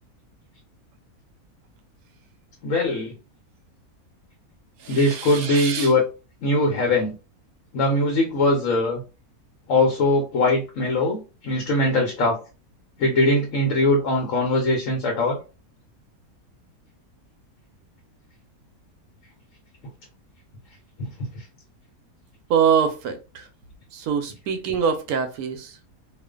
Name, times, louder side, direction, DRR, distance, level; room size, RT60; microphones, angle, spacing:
voice 1, 2.6-3.1 4.9-6.1 6.4-7.1 7.7-9.0 9.7-12.4 13.0-15.4 21.0-21.3, left 2 dB, 65° left, 1.0 m, -21 dB
voice 2, 4.8-5.9 22.5-23.4 23.9-25.7, right 7 dB, 80° right, 1.1 m, -24 dB
2.4 x 2.4 x 2.2 m
omnidirectional pair, 1.6 m